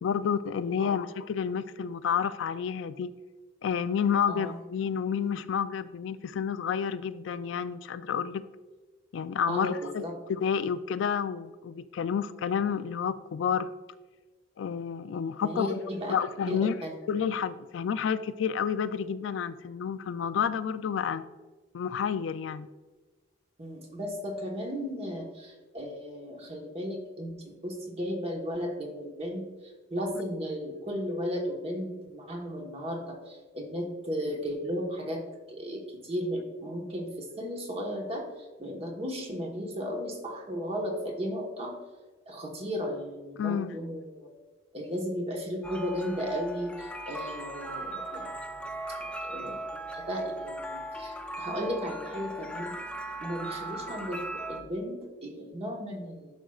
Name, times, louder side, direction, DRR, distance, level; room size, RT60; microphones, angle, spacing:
voice 1, 0.0-3.1 3.6-8.4 9.1-13.7 14.6-15.8 16.1-16.8 17.1-21.2 21.7-22.7 43.4-43.7, left 7 dB, 70° left, 13 dB, 0.3 m, -30 dB
voice 2, 4.3-4.6 9.5-10.1 15.4-16.1 16.5-17.0 23.6-35.2 35.5-41.8 42.3-44.3 44.7-48.7 49.0-49.6 49.9-52.7 53.2-56.3, equal, 30° right, 1 dB, 1.2 m, -35 dB
sound 1, 45.6-54.6, right 1 dB, 5° left, 0.5 m, -38 dB
10.0 x 6.2 x 2.4 m, 1.3 s
head